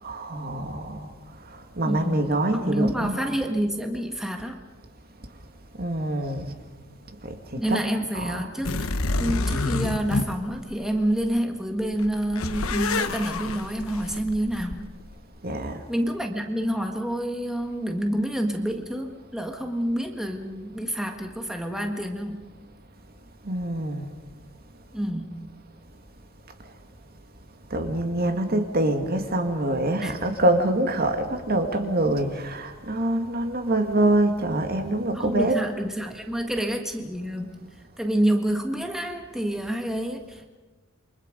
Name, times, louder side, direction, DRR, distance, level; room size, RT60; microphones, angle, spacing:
voice 1, 0.0-1.1 1.4-3.3 5.8-6.6 7.2-7.8 8.1-8.5 15.4-15.9 23.4-24.1 27.7-35.6, right 1 dB, 45° right, 6 dB, 2.2 m, -25 dB
voice 2, 1.8-4.6 7.6-8.9 9.2-14.9 15.9-22.5 24.9-25.4 30.0-30.1 35.1-37.6 38.0-40.5, right 1 dB, ahead, 3 dB, 1.6 m, -28 dB
sound 1, 8.6-11.4 11.8-15.2, left 2 dB, 75° left, 1.2 m, -29 dB
29.0 x 24.5 x 5.3 m, 1.2 s
head